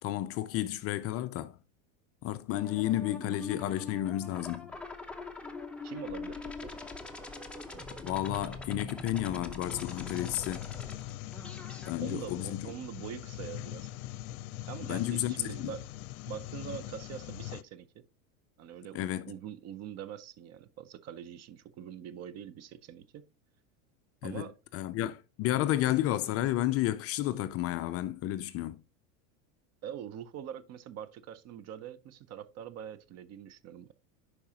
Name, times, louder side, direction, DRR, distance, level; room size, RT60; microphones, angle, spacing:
voice 1, 0.0-1.6 2.2-4.7 8.0-10.7 11.8-12.7 14.9-15.3 15.6-15.7 18.9-19.3 24.2-28.8, left 14 dB, 35° left, 0.4 m, -32 dB
sound 1, 2.5-11.9, left 3 dB, 5° left, 0.7 m, -42 dB
voice 2, 5.8-6.7 12.0-13.9 14.7-15.9 16.3-18.0 18.6-23.2 24.2-24.5 29.8-33.9, right 9 dB, 40° right, 0.6 m, -44 dB
sound 2, 9.6-17.6, left 14 dB, 85° left, 0.6 m, -41 dB
10.5 x 4.7 x 2.8 m
supercardioid pair, 130°, 42 cm